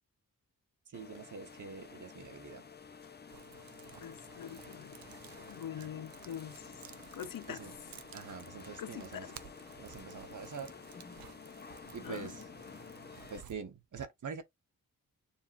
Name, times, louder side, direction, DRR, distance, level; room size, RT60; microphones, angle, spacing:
sound 1, 0.9-13.4, left 5 dB, 30° left, 0.6 m, -51 dB
voice 1, 0.9-2.6 5.8-5.9 7.5-7.7 8.1-9.3 9.8-10.7 11.9-12.5 13.3-14.4, right 5 dB, 60° right, 1.1 m, -45 dB
sound 2, 3.3-13.6, right 10 dB, 80° right, 0.6 m, -55 dB
voice 2, 4.0-5.0 5.5-6.6 7.1-7.6 8.8-9.3 12.0-12.3, left 9 dB, 70° left, 0.6 m, -43 dB
6.9 x 2.9 x 2.5 m
wide cardioid pair, 85°, 35 cm